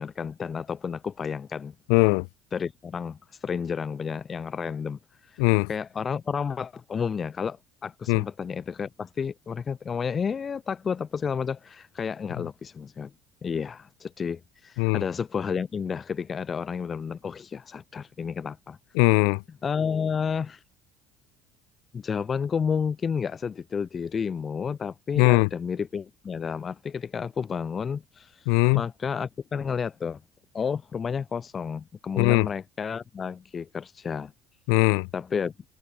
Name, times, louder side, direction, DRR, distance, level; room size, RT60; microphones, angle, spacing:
voice 1, 0.0-1.7 2.5-5.4 5.7-13.1 13.4-18.8 19.6-20.6 21.9-30.2 30.5-34.3 35.1-35.5, left 6 dB, 30° left, 0.5 m, -31 dB
voice 2, 1.9-2.3 5.4-5.7 8.1-8.2 14.8-15.0 19.0-19.4 25.2-25.5 28.5-28.8 32.2-32.5 34.7-35.1, left 40 dB or more, 85° left, 0.3 m, -20 dB
supercardioid pair, 115°, 0 cm